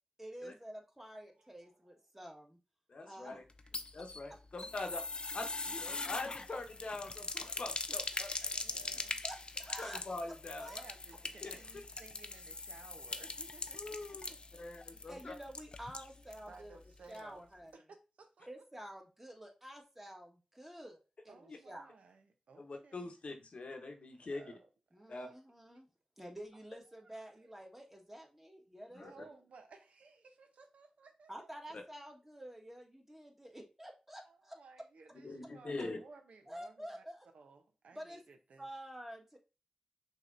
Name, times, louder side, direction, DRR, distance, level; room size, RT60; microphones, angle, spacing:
voice 1, 0.2-2.6 3.1-3.4 9.2-10.0 10.6-10.8 14.9-16.8 17.1-17.7 18.5-21.0 21.2-21.9 24.9-25.9 26.2-29.4 31.3-34.6 36.5-37.2 37.9-38.2 38.6-39.4, equal, 15° right, 1 dB, 1.3 m, -49 dB
voice 2, 1.4-2.0 3.7-3.8 8.6-9.2 10.7-14.6 16.5-17.4 17.7-18.6 21.3-23.1 24.3-24.7 25.0-25.2 27.0-27.5 29.0-31.5 34.2-37.0 37.3-38.7, right 4 dB, 90° right, 5 dB, 0.6 m, -58 dB
voice 3, 2.9-3.4 3.9-5.0 5.3-8.6 9.8-10.7 11.4-11.5 13.7-15.3 21.5-21.6 22.6-24.4 25.1-25.3 28.9-29.2 35.2-36.0, left 2 dB, 65° left, 4 dB, 0.8 m, -43 dB
sound 1, 3.5-16.5 16.7-16.8 17.1-17.2, left 3 dB, 50° left, 0.5 m, -42 dB
6.1 x 2.9 x 2.5 m, 0.31 s
cardioid pair, 50°, 2 cm